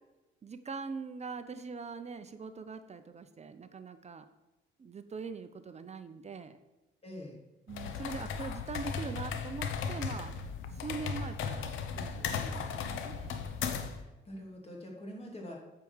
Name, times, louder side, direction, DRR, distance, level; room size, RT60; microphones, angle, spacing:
voice 1, 0.4-4.3 4.8-6.6 7.7-10.4 10.7-11.7 12.0-13.5, right 5 dB, 35° right, 10 dB, 0.7 m, -42 dB
voice 2, 7.0-7.4 13.9-15.6, equal, 30° left, -1 dB, 2.8 m, -45 dB
sound 1, 7.7-14.0, left 6 dB, 85° left, 0.9 m, -36 dB
8.4 x 4.8 x 7.1 m, 1.1 s
cardioid pair, 90°, 20 cm